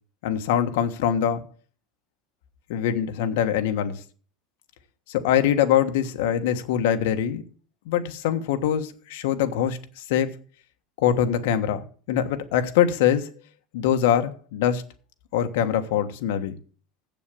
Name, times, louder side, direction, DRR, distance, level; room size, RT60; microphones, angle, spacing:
voice 1, 0.2-1.4 2.7-4.0 5.1-7.4 7.8-10.3 11.0-13.3 13.7-14.8 15.3-16.5, left 9 dB, 75° left, 1.4 m, -23 dB
8.1 x 6.9 x 8.5 m
supercardioid pair, 165°, 0 cm